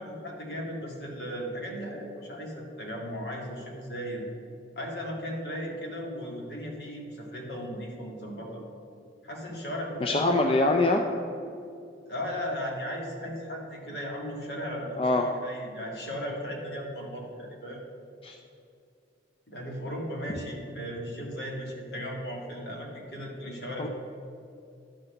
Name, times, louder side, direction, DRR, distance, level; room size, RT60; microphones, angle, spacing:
voice 1, 0.0-4.2 4.8-8.6 9.2-10.4 12.1-17.8 19.5-23.9, equal, 65° left, -1 dB, 1.8 m, -36 dB
voice 2, 10.0-11.0 15.0-15.3 18.2-18.3 23.8-23.9, left 2 dB, 30° left, 3 dB, 0.4 m, -23 dB
11.0 x 4.1 x 6.6 m, 2.6 s
head